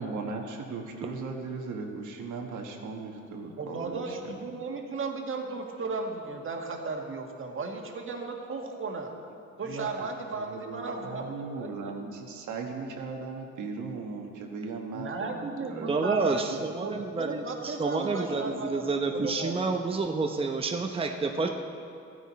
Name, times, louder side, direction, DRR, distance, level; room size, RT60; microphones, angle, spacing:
voice 1, 0.0-4.6 9.6-10.1 10.5-15.9 16.2-16.3, right 4 dB, 75° right, 2 dB, 1.4 m, -38 dB
voice 2, 3.6-9.1 9.6-11.9 14.9-16.5 16.8-18.9 19.1-19.8, right 3 dB, 45° right, 2 dB, 1.6 m, -35 dB
voice 3, 15.9-21.5, right 3 dB, 20° right, 3 dB, 0.8 m, -29 dB
14.5 x 9.8 x 4.2 m, 2.5 s
cardioid pair, 90°, 30 cm